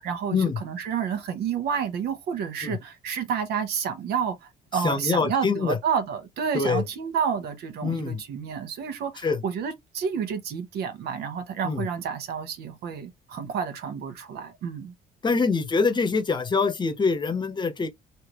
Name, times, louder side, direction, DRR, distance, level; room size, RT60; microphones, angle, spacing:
voice 1, 0.0-14.9, right 7 dB, 75° right, 1.1 m, -30 dB
voice 2, 4.7-5.8 6.5-6.8 7.8-8.2 9.2-9.4 11.6-11.9 15.2-17.9, left 4 dB, 25° left, 0.9 m, -24 dB
3.3 x 2.8 x 2.9 m
cardioid pair, 110°, 17 cm